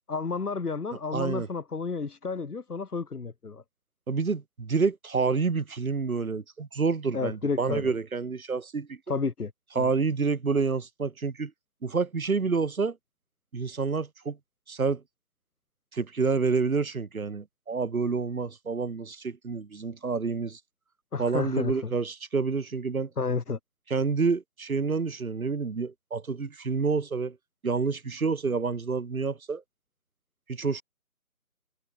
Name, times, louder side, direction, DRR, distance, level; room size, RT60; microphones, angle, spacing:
voice 1, 0.0-3.6 7.1-7.9 9.1-9.9 21.1-21.9 23.2-23.6, left 4 dB, 85° left, 2.1 m, -31 dB
voice 2, 1.1-1.5 4.1-9.0 9.8-11.5 11.8-13.0 13.5-14.4 14.7-15.0 15.9-20.6 21.2-23.1 23.9-27.4 27.6-29.6 30.5-30.8, right 4 dB, 65° right, 1.8 m, -28 dB
figure-of-eight pair, 175°, 44 cm